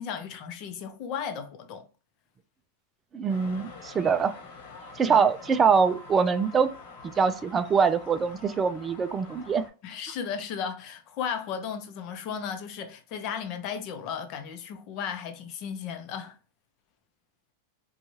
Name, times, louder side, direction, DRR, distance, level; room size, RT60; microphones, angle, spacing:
voice 1, 0.0-1.9 5.1-5.2 9.8-16.4, left 7 dB, 45° left, 0.6 m, -35 dB
voice 2, 3.1-4.3 5.0-6.7 7.0-9.6, right 6 dB, 20° right, 0.3 m, -24 dB
sound 1, 3.3-9.7, left 3 dB, 65° left, 0.9 m, -46 dB
2.7 x 2.3 x 3.1 m
supercardioid pair, 135°, 0 cm